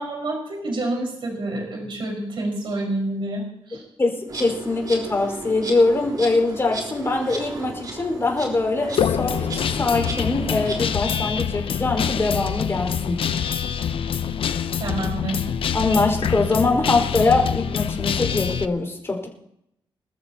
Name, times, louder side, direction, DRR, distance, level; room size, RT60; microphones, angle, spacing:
voice 1, 0.0-3.8 14.8-15.4, right 2 dB, 65° right, 0 dB, 5.2 m, -28 dB
voice 2, 4.0-13.3 15.7-19.3, left 3 dB, 25° left, 1 dB, 4.9 m, -23 dB
Insect, 4.3-11.0, right 3 dB, 45° right, 3.8 m, -35 dB
Guitar, 9.0-18.7, left 8 dB, 70° left, 0.7 m, -25 dB
26.5 x 14.0 x 2.9 m, 0.77 s
wide cardioid pair, 120°, 9 cm